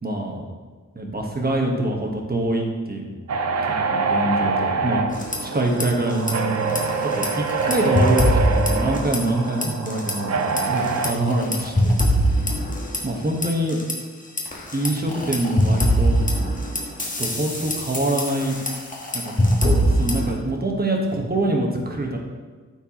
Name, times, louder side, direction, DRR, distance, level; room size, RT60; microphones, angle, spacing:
voice 1, 0.0-0.4 1.0-3.2 3.6-12.0 13.0-13.8 14.7-16.2 17.2-18.6 19.1-22.2, right 1 dB, 30° right, 1 dB, 1.2 m, -25 dB
sound 1, 3.3-11.1, right 4 dB, 60° right, 0.5 m, -25 dB
sound 2, 5.1-5.8 6.1-6.3 6.7-9.4 9.6-10.1 10.6-13.9 14.4-20.3, equal, 25° left, 1.2 m, -22 dB
12.5 x 4.5 x 3.0 m, 1.4 s
wide cardioid pair, 105°, 30 cm